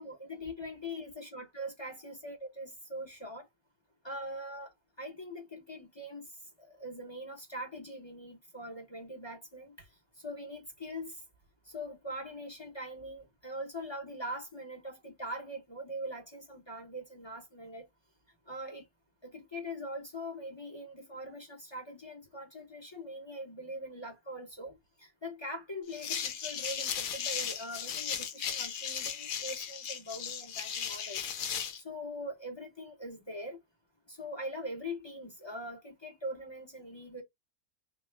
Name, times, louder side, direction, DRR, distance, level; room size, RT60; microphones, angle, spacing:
voice 1, 0.0-3.5 4.0-6.3 6.6-9.9 10.2-11.2 11.6-17.9 18.5-18.9 19.2-31.3 31.8-33.6 34.1-37.2, equal, 25° left, 0.6 m, -42 dB
sound 1, 25.9-31.8, left 8 dB, 75° left, 1.1 m, -36 dB
3.5 x 2.3 x 3.2 m
omnidirectional pair, 1.5 m